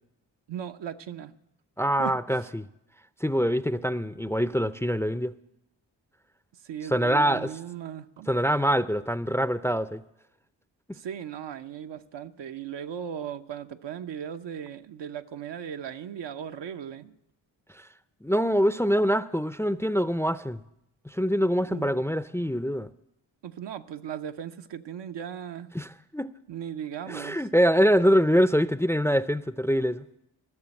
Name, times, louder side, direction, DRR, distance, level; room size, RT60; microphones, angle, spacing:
voice 1, 0.5-1.3 2.0-2.2 6.6-8.3 10.9-17.1 21.6-21.9 23.4-25.7 26.5-27.4, right 9 dB, 70° right, 0.8 m, -37 dB
voice 2, 1.8-2.6 3.2-5.3 6.9-7.5 8.3-10.0 18.2-20.6 21.1-22.9 25.7-26.3 27.1-30.0, equal, 5° left, 0.5 m, -24 dB
14.5 x 6.9 x 9.7 m
supercardioid pair, 45°, 45 cm